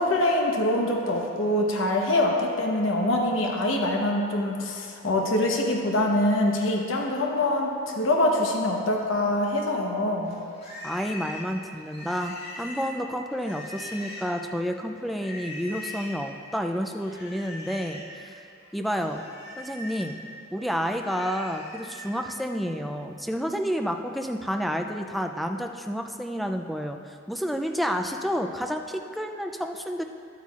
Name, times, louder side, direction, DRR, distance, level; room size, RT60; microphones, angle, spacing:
voice 1, 0.0-10.4, left 1 dB, 75° left, 0 dB, 1.0 m, -24 dB
Livestock farm animals working animals, 10.2-14.5 15.1-16.2 17.0-18.1 18.5-22.2, left 1 dB, 50° left, 2.0 m, -41 dB
voice 2, 10.8-18.4 18.7-19.2 19.6-20.2 20.5-30.0, equal, ahead, 4 dB, 0.3 m, -30 dB
11.5 x 8.2 x 2.4 m, 2.4 s
head